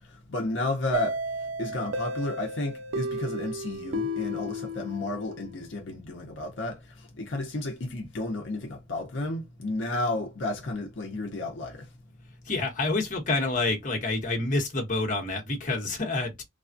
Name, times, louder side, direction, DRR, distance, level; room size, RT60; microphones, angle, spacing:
voice 1, 0.3-1.2 1.6-6.8 7.2-11.8, left 2 dB, 75° left, 0.7 m, -32 dB
sound 1, 0.9-5.6, equal, 80° right, 0.4 m, -33 dB
voice 2, 12.5-16.4, left 2 dB, 45° left, 1.1 m, -28 dB
3.3 x 2.3 x 2.5 m
head